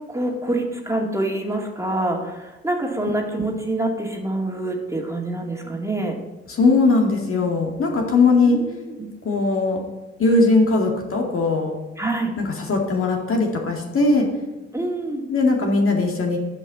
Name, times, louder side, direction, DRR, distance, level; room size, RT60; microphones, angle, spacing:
voice 1, 0.1-6.2 8.4-9.1 12.0-12.3 14.7-15.2, right 2 dB, 10° right, 0 dB, 2.3 m, -26 dB
voice 2, 6.6-8.6 9.2-9.8 10.2-11.8 12.4-14.3 15.3-16.4, left 3 dB, 45° left, 1 dB, 2.2 m, -19 dB
9.3 x 5.4 x 6.9 m, 1.1 s
hypercardioid pair, 45°, 30 cm